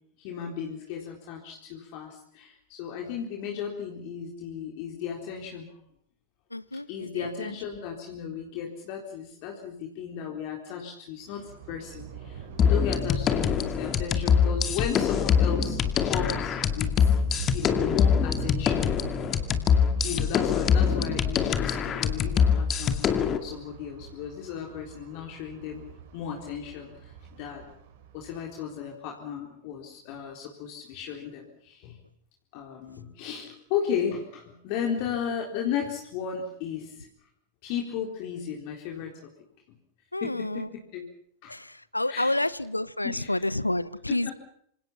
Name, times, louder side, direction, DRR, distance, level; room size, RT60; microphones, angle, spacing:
voice 1, 0.2-5.7 6.7-17.2 17.5-19.0 20.0-23.0 23.3-25.9 26.1-27.6 28.1-32.0 32.5-37.1 37.6-39.3 40.2-41.1 41.4-41.6 42.1-42.5 43.0-43.5 44.1-44.3, left 7 dB, 45° left, 1 dB, 3.9 m, -35 dB
voice 2, 6.5-7.5 40.1-40.7 41.5-44.3, left 1 dB, 85° left, 20 dB, 0.9 m, -29 dB
Thunder, 11.2-28.6, right 7 dB, 55° right, 6.8 m, -43 dB
sound 1, 12.6-23.4, left 7 dB, 30° left, 2.4 m, -24 dB
27.0 x 26.5 x 5.9 m, 0.68 s
figure-of-eight pair, 90°, 0 cm